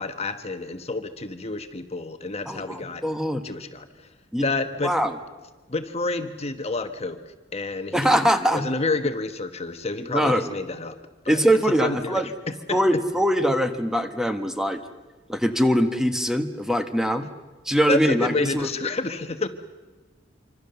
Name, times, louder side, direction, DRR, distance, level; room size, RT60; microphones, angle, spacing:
voice 1, 0.0-3.0 3.4-4.1 4.4-4.9 5.7-7.2 7.5-8.3 8.5-11.0 11.2-11.4 11.7-12.8 17.9-19.5, left 3 dB, 35° left, 8 dB, 1.2 m, -29 dB
voice 2, 2.5-3.4 4.3-4.5 4.8-5.2 7.9-8.7 10.1-10.5 11.3-12.3 12.7-14.8 15.3-17.3 17.6-18.7, equal, 5° right, 7 dB, 1.3 m, -22 dB
26.0 x 25.5 x 6.9 m, 1.2 s
head